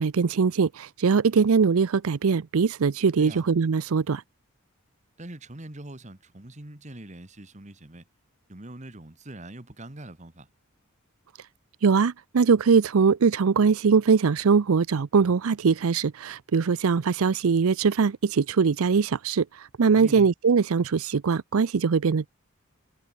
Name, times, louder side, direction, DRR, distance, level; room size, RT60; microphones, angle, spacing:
voice 1, 0.0-4.2 11.8-22.3, right 5 dB, 80° right, 0.5 m, -22 dB
voice 2, 5.2-8.0 8.5-10.5 19.9-20.3, right 1 dB, 35° right, 1.7 m, -42 dB
head